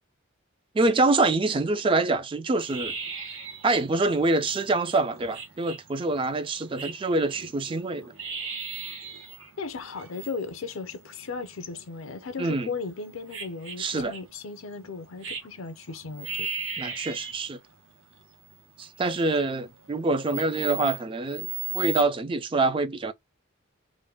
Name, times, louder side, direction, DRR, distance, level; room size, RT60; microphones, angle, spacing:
voice 1, 0.7-3.0 3.6-8.1 12.4-12.7 13.8-14.1 16.8-17.6 18.8-21.5 21.7-23.1, right 3 dB, 25° right, 0.3 m, -25 dB
sound 1, 2.6-22.0, right 6 dB, 70° right, 0.8 m, -38 dB
voice 2, 9.6-16.5, left 4 dB, 75° left, 0.5 m, -36 dB
2.5 x 2.1 x 3.3 m
head